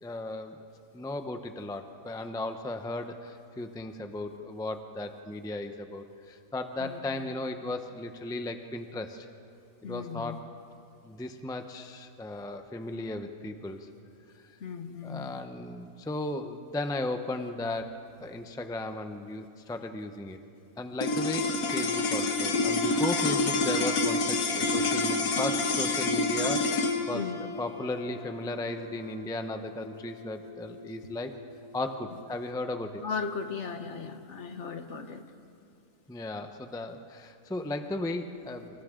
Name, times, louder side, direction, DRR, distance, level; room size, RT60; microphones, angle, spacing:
voice 1, 0.0-0.6 0.9-9.3 9.8-10.4 11.0-13.9 15.0-20.4 20.8-27.2 27.6-31.3 31.7-33.0 36.1-38.8, left 2 dB, 5° left, 7 dB, 0.6 m, -36 dB
voice 2, 6.8-7.3 9.8-10.4 14.6-15.3 27.1-27.4 33.0-35.3, left 5 dB, 55° left, 7 dB, 1.3 m, -37 dB
sound 1, 21.0-31.4, left 3 dB, 75° left, 1.8 m, -28 dB
30.0 x 26.5 x 3.8 m, 2.5 s
omnidirectional pair, 1.5 m